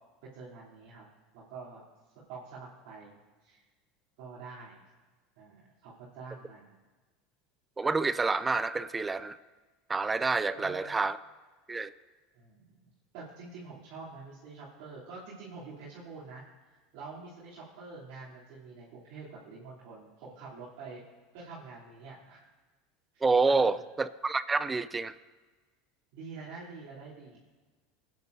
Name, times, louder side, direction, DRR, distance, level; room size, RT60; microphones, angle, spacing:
voice 1, 0.3-1.0 1.3-1.8 2.3-3.6 4.2-4.8 5.3-6.8 10.5-11.0 12.3-21.0 21.3-22.4 23.1-23.8 26.1-27.4, right 4 dB, 65° right, -9 dB, 3.2 m, -47 dB
voice 2, 7.8-9.4 9.9-11.2 11.7-11.9 23.2-25.1, right 3 dB, 20° right, 15 dB, 0.5 m, -28 dB
21.5 x 9.5 x 2.7 m, 1.3 s
hypercardioid pair, 90°, 0 cm